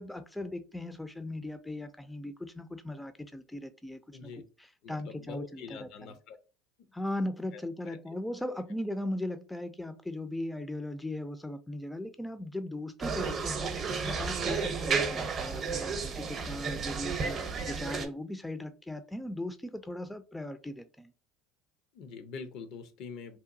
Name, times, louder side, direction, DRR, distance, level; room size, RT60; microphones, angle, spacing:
voice 1, 0.0-4.3 4.9-5.9 6.9-13.7 14.0-21.1, left 1 dB, 5° left, 0.3 m, -38 dB
voice 2, 4.1-4.4 4.8-6.4 7.5-8.2 8.5-8.6 21.9-23.4, left 5 dB, 60° left, 0.5 m, -45 dB
sound 1, 13.0-18.1, right 5 dB, 40° right, 0.7 m, -32 dB
2.8 x 2.2 x 2.6 m
hypercardioid pair, 70°, 0 cm